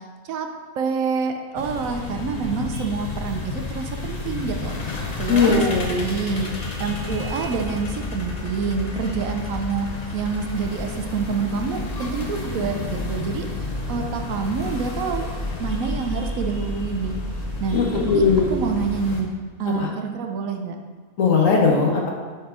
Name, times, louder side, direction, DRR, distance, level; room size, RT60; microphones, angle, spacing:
voice 1, 0.8-4.9 5.2-6.5 6.8-13.5 13.9-15.3 15.6-17.2 17.6-18.3 18.5-19.3 19.6-20.8, right 5 dB, 75° right, 5 dB, 1.0 m, -27 dB
sound 1, 1.6-19.2, left 3 dB, 35° left, 0.7 m, -30 dB
voice 2, 5.3-6.0 17.7-18.5 19.7-19.9 21.2-22.1, left 4 dB, 65° left, 0 dB, 1.4 m, -19 dB
5.3 x 4.4 x 5.2 m, 1.5 s
omnidirectional pair, 1.5 m